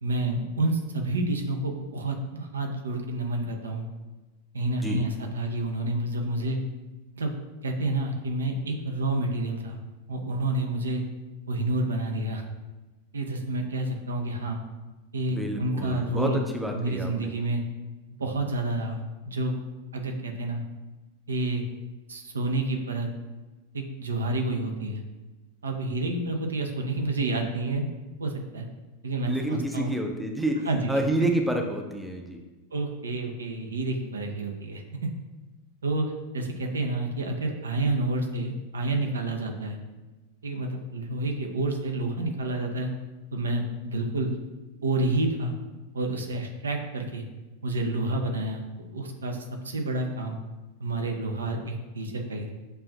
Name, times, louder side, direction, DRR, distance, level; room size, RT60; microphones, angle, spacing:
voice 1, 0.0-3.9 4.5-6.6 7.2-7.3 7.6-9.8 10.1-11.0 11.5-12.4 13.1-14.6 15.1-16.4 16.7-17.6 18.2-19.0 19.3-19.6 19.9-20.6 21.3-21.6 22.1-23.1 23.7-25.0 25.6-27.8 28.2-28.7 29.0-29.9 30.7-31.0 32.7-34.8 35.8-36.1 36.3-39.8 40.4-42.9 43.3-44.3 44.8-45.5 45.9-47.2 47.6-48.6 48.9-50.4 50.8-52.5, right 2 dB, 70° right, 3 dB, 0.5 m, -29 dB
voice 2, 15.3-17.3 29.3-32.4, right 1 dB, 5° right, 2 dB, 0.5 m, -29 dB
6.7 x 2.5 x 2.3 m, 1.2 s
figure-of-eight pair, 90°, 0 cm